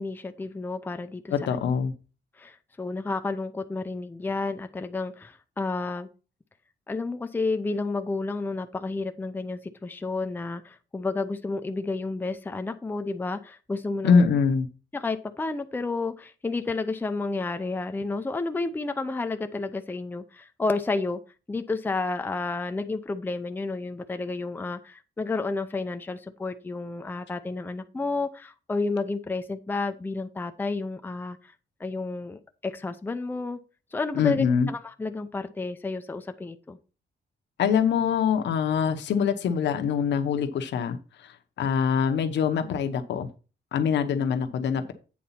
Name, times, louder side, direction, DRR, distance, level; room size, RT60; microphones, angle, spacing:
voice 1, 0.0-1.3 2.4-6.1 6.9-14.3 14.9-21.2 21.5-31.5 31.8-33.6 33.9-36.8, left 3 dB, 10° left, 8 dB, 0.5 m, -31 dB
voice 2, 1.3-1.9 14.0-14.7 34.1-34.7 37.6-43.3 43.7-44.9, left 6 dB, 80° left, 8 dB, 1.0 m, -24 dB
8.6 x 4.1 x 5.7 m, 0.34 s
wide cardioid pair, 160°, 18 cm